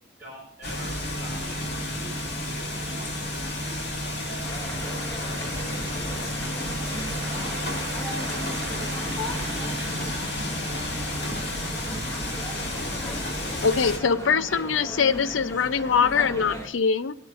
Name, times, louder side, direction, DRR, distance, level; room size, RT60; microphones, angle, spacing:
voice 1, 0.2-1.7 2.0-3.3 4.3-4.4, right 1 dB, 10° right, 3.9 m, -46 dB
sound 1, 0.6-14.0, left 1 dB, 55° left, 2.6 m, -31 dB
sound 2, 1.7-12.1, right 2 dB, 35° right, 0.9 m, -45 dB
sound 3, 4.4-16.7, equal, 15° left, 1.6 m, -37 dB
voice 2, 6.6-10.4, right 6 dB, 55° right, 0.6 m, -42 dB
voice 3, 13.6-17.1, left 6 dB, 80° left, 0.5 m, -23 dB
20.5 x 8.4 x 2.5 m
head